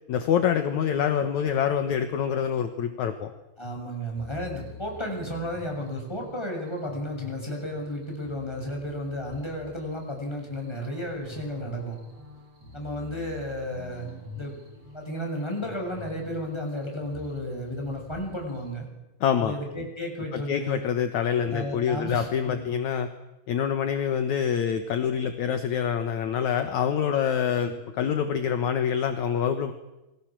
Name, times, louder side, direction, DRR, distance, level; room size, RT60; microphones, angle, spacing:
voice 1, 0.1-3.3 19.2-19.6 20.3-23.1 23.5-29.7, left 8 dB, 60° left, 7 dB, 2.5 m, -26 dB
voice 2, 3.6-12.0 12.7-14.1 14.4-14.6 14.9-18.9 19.4-20.8 21.4-22.7 27.6-27.8, equal, 5° left, 0 dB, 6.9 m, -33 dB
sound 1, 4.2-18.7, left 3 dB, 45° right, 8.2 m, -47 dB
29.0 x 22.0 x 7.5 m, 1.0 s
omnidirectional pair, 4.0 m